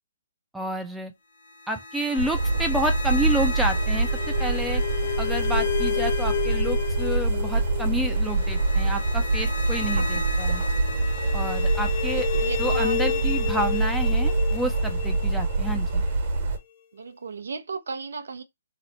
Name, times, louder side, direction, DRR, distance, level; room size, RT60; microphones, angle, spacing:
voice 1, 0.5-1.1 1.7-4.1 4.4-4.8 5.2-10.6 11.3-12.3 12.6-16.0, right 1 dB, 5° right, 0.4 m, -29 dB
sound 1, 1.4-16.4, left 7 dB, 50° left, 1.0 m, -32 dB
sound 2, 2.2-16.6, right 3 dB, 50° right, 1.1 m, -25 dB
voice 2, 12.1-13.2 16.9-18.4, right 5 dB, 75° right, 0.5 m, -35 dB
2.9 x 2.0 x 4.1 m
hypercardioid pair, 140°, 0 cm